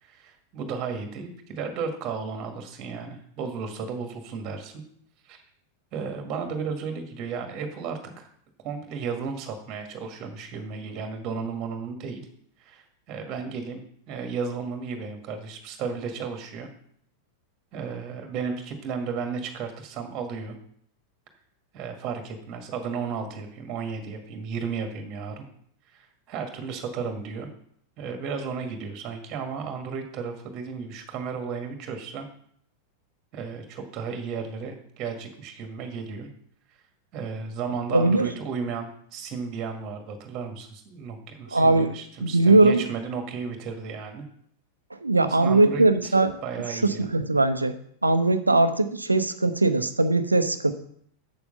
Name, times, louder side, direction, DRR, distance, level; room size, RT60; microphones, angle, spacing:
voice 1, 0.0-4.8 5.3-5.4 5.9-8.3 8.6-12.2 12.6-16.7 17.7-20.6 21.7-25.4 25.9-27.5 28.0-32.3 33.3-36.3 37.1-44.3 45.2-46.2 46.4-47.1, right 5 dB, 35° right, 5 dB, 1.9 m, -34 dB
voice 2, 37.9-38.3 41.5-41.9 42.2-42.8 45.0-46.4 46.7-47.7 48.0-50.7, right 2 dB, 80° right, 10 dB, 0.8 m, -20 dB
8.0 x 7.0 x 5.5 m, 0.65 s
figure-of-eight pair, 90°, 0 cm